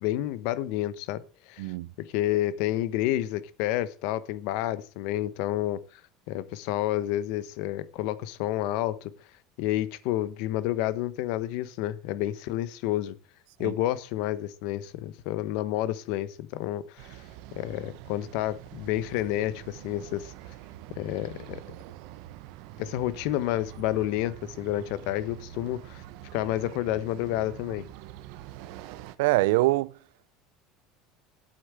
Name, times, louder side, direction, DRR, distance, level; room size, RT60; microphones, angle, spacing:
voice 1, 0.0-1.7 2.0-5.8 6.3-9.1 9.6-13.2 13.6-17.2 17.5-20.3 20.9-21.6 22.8-26.0 26.3-27.9, left 14 dB, 65° left, 1.0 m, -30 dB
sound 1, 17.0-29.2, right 13 dB, 65° right, 1.0 m, -45 dB
voice 2, 29.2-29.9, right 20 dB, 90° right, 0.5 m, -23 dB
8.6 x 8.3 x 7.7 m
cardioid pair, 155°, 0 cm